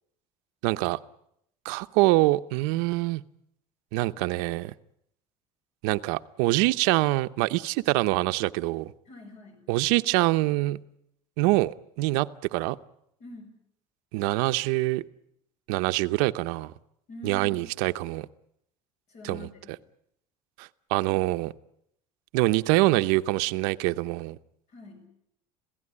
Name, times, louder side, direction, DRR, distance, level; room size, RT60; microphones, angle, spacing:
voice 1, 0.6-1.0 1.6-3.2 3.9-4.7 5.8-8.9 9.7-10.8 11.4-12.8 14.1-15.0 15.7-16.7 17.2-18.3 19.2-19.5 20.6-21.5 22.3-24.4, right 20 dB, 90° right, 11 dB, 0.9 m, -25 dB
voice 2, 9.1-9.6 13.2-13.5 17.1-17.7 19.1-19.7 24.7-25.1, left 2 dB, 50° left, 6 dB, 7.5 m, -44 dB
27.0 x 16.5 x 9.8 m, 0.77 s
cardioid pair, 140°, 14 cm